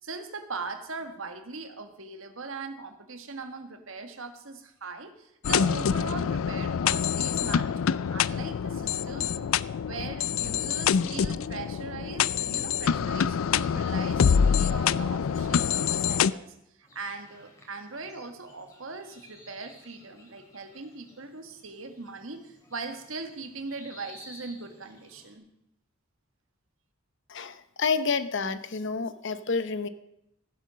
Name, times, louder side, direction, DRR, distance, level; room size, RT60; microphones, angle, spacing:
voice 1, 0.0-9.5 9.8-25.4, right 4 dB, 70° right, 7 dB, 1.7 m, -40 dB
sound 1, 5.4-16.3, left 7 dB, 80° left, 0.4 m, -26 dB
sound 2, 16.8-25.4, left 1 dB, 15° left, 3.6 m, -54 dB
voice 2, 27.3-29.9, left 5 dB, 60° left, 12 dB, 0.9 m, -29 dB
15.0 x 9.8 x 6.4 m, 0.82 s
head